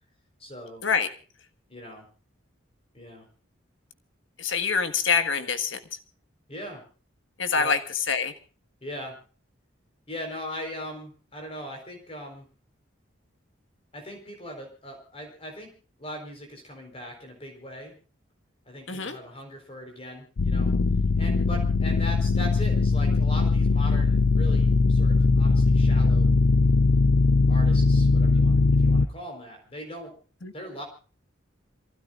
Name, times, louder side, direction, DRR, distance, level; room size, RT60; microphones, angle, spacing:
voice 1, 0.4-0.8 1.7-2.0 2.9-3.3 6.5-6.8 7.5-7.7 8.8-9.1 10.1-12.5 13.9-15.7 16.0-17.9 18.7-20.8 21.2-26.3 27.5-30.1 30.5-30.8, equal, 30° left, 2 dB, 4.3 m, -40 dB
voice 2, 4.4-5.8 7.4-7.8 8.1-8.3 18.9-19.2 30.4-30.5, left 5 dB, 75° left, 8 dB, 1.6 m, -25 dB
sound 1, 20.4-29.1, left 3 dB, 90° left, 0.6 m, -20 dB
27.5 x 16.0 x 2.5 m, 0.39 s
head